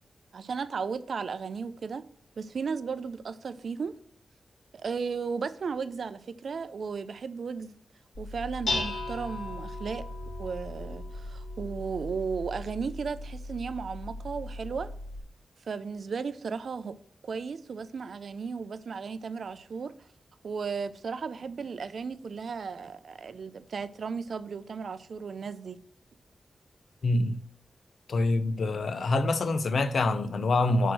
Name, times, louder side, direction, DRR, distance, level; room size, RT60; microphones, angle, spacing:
voice 1, 0.3-2.0 2.4-4.0 4.7-7.7 8.2-10.0 10.4-14.9 15.7-17.0 17.2-19.9 20.4-25.8, right 5 dB, 70° right, 0.4 m, -35 dB
Dishes pots and pans, 8.1-15.2, left 2 dB, 90° left, 2.2 m, -37 dB
voice 2, 27.0-27.4 28.1-30.9, left 2 dB, 70° left, 0.5 m, -26 dB
6.1 x 4.5 x 6.2 m
wide cardioid pair, 130°, 0 cm